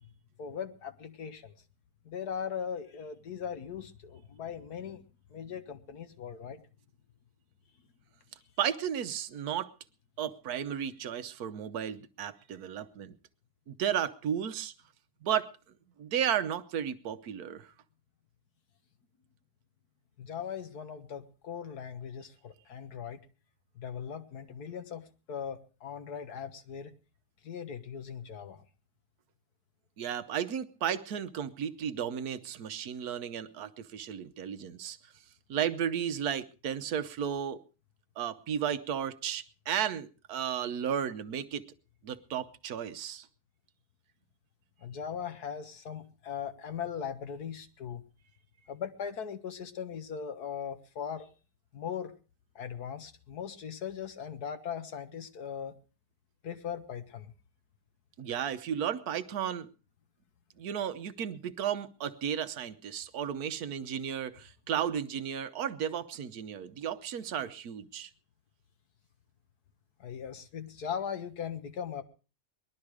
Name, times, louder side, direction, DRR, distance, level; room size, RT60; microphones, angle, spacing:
voice 1, 0.4-1.6 2.1-5.0 5.3-6.7 20.2-23.3 23.8-26.9 27.4-28.6 44.8-48.0 48.7-51.3 51.7-52.1 52.6-55.8 56.4-57.3 70.0-72.0, left 7 dB, 80° left, 1.9 m, -39 dB
voice 2, 8.6-9.7 10.2-13.1 13.7-14.7 15.2-15.5 16.0-17.7 30.0-35.0 35.5-37.6 38.2-41.6 42.0-43.3 58.2-59.7 60.6-68.1, right 9 dB, 70° right, 1.4 m, -34 dB
20.5 x 12.0 x 4.8 m
omnidirectional pair, 1.7 m